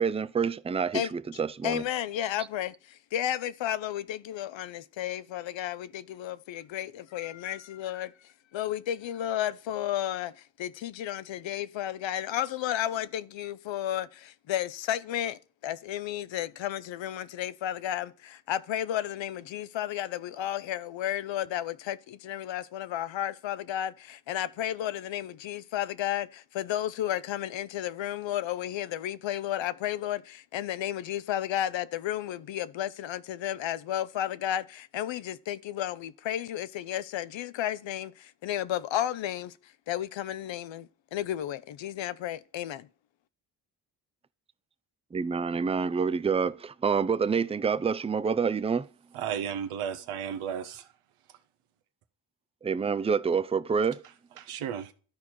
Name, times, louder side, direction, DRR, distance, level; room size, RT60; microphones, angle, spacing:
voice 1, 0.0-1.8 45.1-48.9 52.6-54.0, right 6 dB, 15° right, 0.4 m, -27 dB
voice 2, 1.6-8.1 8.5-10.3 10.6-39.5 39.9-42.9, left 11 dB, 65° left, 0.7 m, -33 dB
voice 3, 49.1-50.8 54.4-54.9, right 8 dB, 85° right, 1.0 m, -34 dB
12.0 x 4.6 x 4.3 m
supercardioid pair, 50°, 50 cm